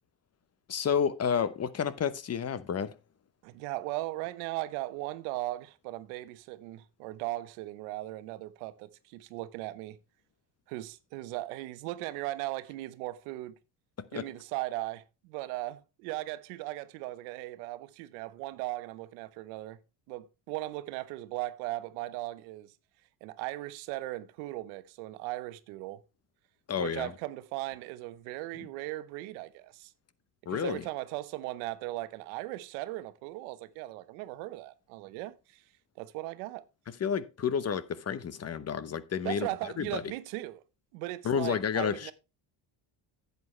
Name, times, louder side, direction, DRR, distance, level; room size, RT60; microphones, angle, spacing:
voice 1, 0.7-3.0 14.0-14.3 26.7-27.1 28.6-28.7 30.5-30.9 36.9-40.0 41.2-42.1, left 7 dB, 35° left, 0.9 m, -31 dB
voice 2, 3.4-10.0 10.7-13.5 14.1-19.8 20.1-22.7 23.2-26.0 26.8-29.9 30.5-35.6 36.0-36.6 39.2-40.6 40.9-42.1, right 17 dB, 85° right, 1.0 m, -38 dB
10.5 x 8.2 x 3.2 m
supercardioid pair, 90°, 46 cm